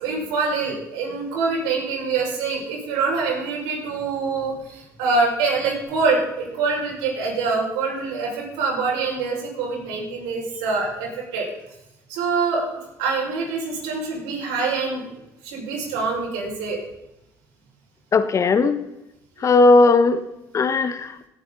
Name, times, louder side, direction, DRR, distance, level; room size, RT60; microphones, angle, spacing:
voice 1, 0.0-11.5 12.1-15.0 15.4-16.8 19.4-19.5, right 4 dB, 80° right, -2 dB, 5.7 m, -25 dB
voice 2, 18.1-18.8 19.4-20.2 20.5-21.1, left 3 dB, 40° left, 12 dB, 1.1 m, -16 dB
17.5 x 8.6 x 4.1 m, 0.91 s
supercardioid pair, 75°, 8 cm